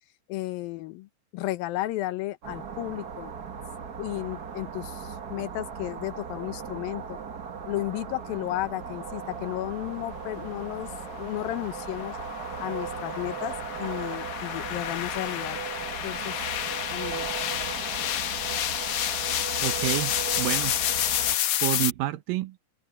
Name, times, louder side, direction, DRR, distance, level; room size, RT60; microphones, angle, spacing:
voice 1, 0.3-3.3 4.0-7.2 7.7-10.9 11.2-12.2 12.6-13.5 13.8-15.6 16.0-16.5 16.9-17.4, left 17 dB, 80° left, 2.6 m, -33 dB
sound 1, 2.4-21.4, right 6 dB, 60° right, 1.0 m, -37 dB
sound 2, 9.8-21.9, left 11 dB, 65° left, 2.2 m, -30 dB
voice 2, 19.6-20.7 21.6-22.6, right 15 dB, 75° right, 2.5 m, -29 dB
omnidirectional pair, 4.1 m